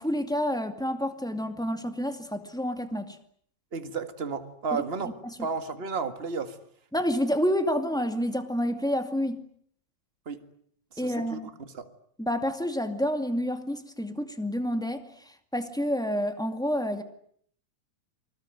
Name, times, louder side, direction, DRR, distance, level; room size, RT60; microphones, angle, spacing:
voice 1, 0.0-3.2 4.7-4.8 5.2-5.5 6.9-9.4 11.0-11.5 12.2-17.0, equal, ahead, 1.2 m, -29 dB
voice 2, 3.7-5.1 5.4-6.6 10.2-10.4 10.9-11.4 11.7-11.9, right 5 dB, 35° right, 1.0 m, -32 dB
28.5 x 21.0 x 9.3 m
omnidirectional pair, 4.1 m